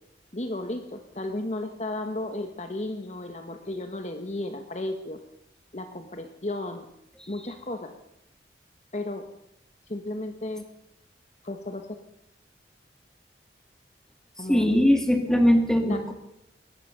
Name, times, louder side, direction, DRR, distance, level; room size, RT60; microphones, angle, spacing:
voice 1, 0.3-5.2 5.7-6.9 7.3-7.9 8.9-9.3 9.9-10.7 11.4-11.9 14.4-14.7 15.8-16.1, left 1 dB, 40° left, 6 dB, 1.5 m, -34 dB
voice 2, 14.4-16.1, equal, 5° left, 4 dB, 2.7 m, -21 dB
21.5 x 18.0 x 6.9 m, 0.81 s
head